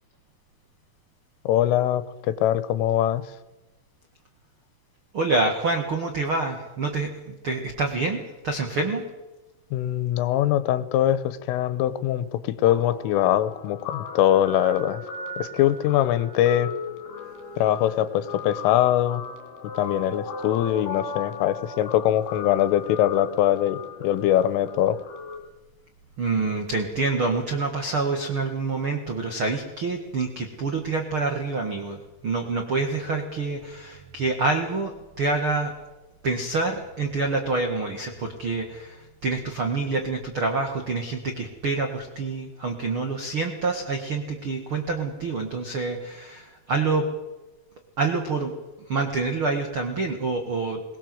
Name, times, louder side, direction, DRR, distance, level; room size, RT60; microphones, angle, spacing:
voice 1, 1.5-3.2 9.7-15.0 15.4-16.7 17.6-19.2 19.8-25.0, left 12 dB, 85° left, 14 dB, 3.6 m, -22 dB
voice 2, 5.1-9.0 26.2-35.7 36.2-47.0 48.0-48.5 48.9-50.8, right 3 dB, 90° right, 4 dB, 1.1 m, -27 dB
Guitar, 12.7-25.4, left 4 dB, 60° left, 5.0 m, -37 dB
22.0 x 19.0 x 7.8 m, 1.1 s
omnidirectional pair, 5.7 m